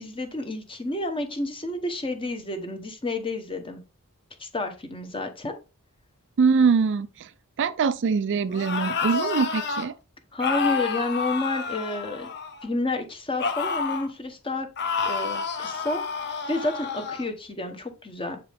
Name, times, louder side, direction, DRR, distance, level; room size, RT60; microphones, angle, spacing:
voice 1, 0.0-3.8 4.4-5.5 10.3-12.3 12.6-14.7 15.0-18.4, left 2 dB, 25° left, 1.0 m, -30 dB
voice 2, 6.4-7.3 7.6-9.9, right 5 dB, 55° right, 0.4 m, -23 dB
sound 1, 8.5-9.9 10.4-12.7 13.4-14.1 14.8-17.2, left 5 dB, 50° left, 0.8 m, -29 dB
7.5 x 4.7 x 3.5 m
head